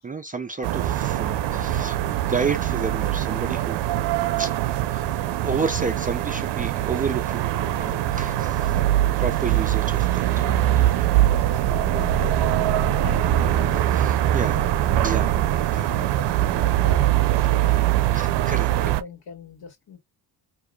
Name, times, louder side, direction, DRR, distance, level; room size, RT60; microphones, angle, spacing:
voice 1, 0.0-4.0 4.4-4.5 4.9-8.9 9.2-10.6 11.4-11.6 13.7-14.5 15.0-15.9 18.1-18.7, right 4 dB, 20° right, 0.4 m, -31 dB
sound 1, 0.6-19.0, right 13 dB, 80° right, 0.6 m, -22 dB
voice 2, 10.4-13.6 14.3-14.7 14.9-15.2 15.9-17.8 18.4-20.0, left 6 dB, 60° left, 1.8 m, -41 dB
4.8 x 2.7 x 2.2 m
cardioid pair, 150°, 41 cm